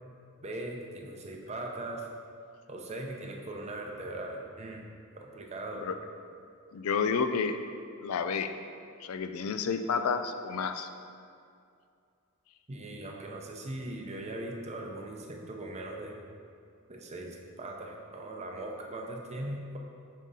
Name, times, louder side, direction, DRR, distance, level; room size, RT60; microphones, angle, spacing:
voice 1, 0.4-2.1 2.7-4.9 5.2-5.9 12.7-16.2 16.9-19.8, right 1 dB, 30° right, 1 dB, 0.7 m, -39 dB
voice 2, 6.7-7.6 8.0-8.5 9.0-10.9, left 5 dB, 80° left, 8 dB, 0.4 m, -30 dB
5.5 x 3.7 x 5.4 m, 2.4 s
head